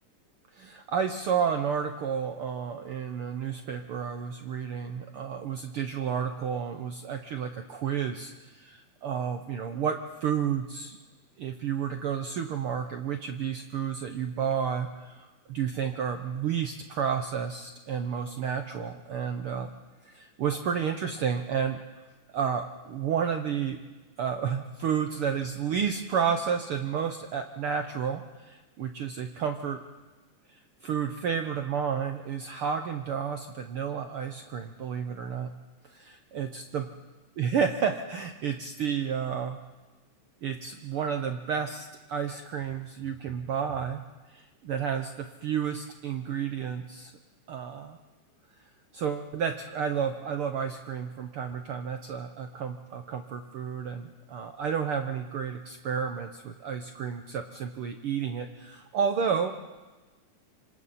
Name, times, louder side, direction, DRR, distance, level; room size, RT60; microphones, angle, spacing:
voice 1, 0.5-11.0 11.4-19.7 20.0-21.8 22.3-23.8 24.2-29.8 30.8-35.5 35.9-36.8 37.4-39.6 40.4-44.0 44.3-47.1 47.5-48.0 48.9-59.5, right 7 dB, 85° right, 6 dB, 1.2 m, -31 dB
26.5 x 25.5 x 4.2 m, 1.2 s
omnidirectional pair, 3.7 m